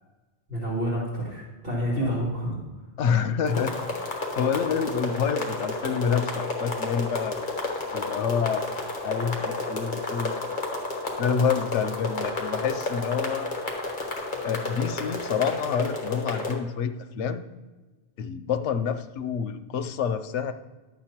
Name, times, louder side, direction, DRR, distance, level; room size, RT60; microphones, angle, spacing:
voice 1, 0.5-2.6, equal, 55° right, -5 dB, 2.6 m, -28 dB
voice 2, 3.0-3.8 4.4-7.4 7.9-8.7 9.0-10.7 11.2-13.5 14.4-17.4 18.2-20.5, left 7 dB, 85° left, 10 dB, 0.9 m, -27 dB
sound 1, 3.5-16.5, left 2 dB, 45° left, 1.5 m, -31 dB
11.0 x 7.2 x 3.0 m, 1.2 s
omnidirectional pair, 1.2 m